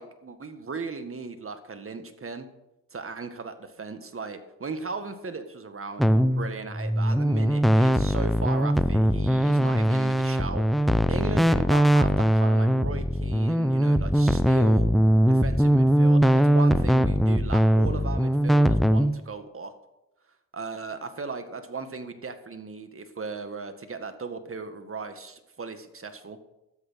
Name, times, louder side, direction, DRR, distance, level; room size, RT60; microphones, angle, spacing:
voice 1, 0.0-2.5 2.9-14.9 15.3-19.7 20.5-26.4, right 4 dB, 30° right, 8 dB, 2.0 m, -37 dB
sound 1, 6.0-19.1, equal, ahead, 0.8 m, -21 dB
13.0 x 8.2 x 6.5 m, 0.90 s
supercardioid pair, 60°, 42 cm